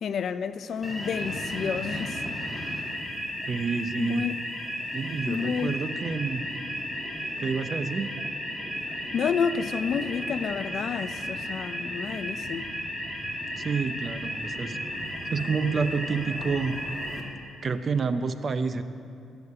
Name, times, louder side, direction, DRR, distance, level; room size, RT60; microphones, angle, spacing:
voice 1, 0.0-2.2 4.0-4.4 5.3-5.8 9.1-12.6, left 6 dB, 60° left, 0.5 m, -30 dB
sound 1, 0.8-17.2, equal, 5° left, 2.0 m, -34 dB
voice 2, 3.5-4.3 4.9-6.4 7.4-8.1 13.6-14.8 15.0-16.8 17.6-18.8, right 5 dB, 40° right, 0.7 m, -29 dB
12.5 x 7.0 x 9.6 m
cardioid pair, 90°, 0 cm